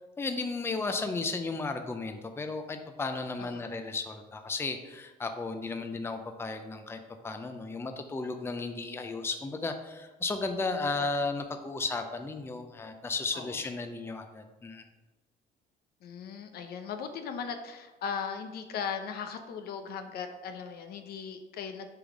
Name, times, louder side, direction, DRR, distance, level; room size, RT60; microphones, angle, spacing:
voice 1, 0.2-14.8, left 3 dB, 15° left, 6 dB, 0.5 m, -34 dB
voice 2, 16.0-21.9, left 6 dB, 65° left, 7 dB, 0.8 m, -38 dB
6.8 x 3.9 x 4.8 m, 1.2 s
cardioid pair, 110°, 17 cm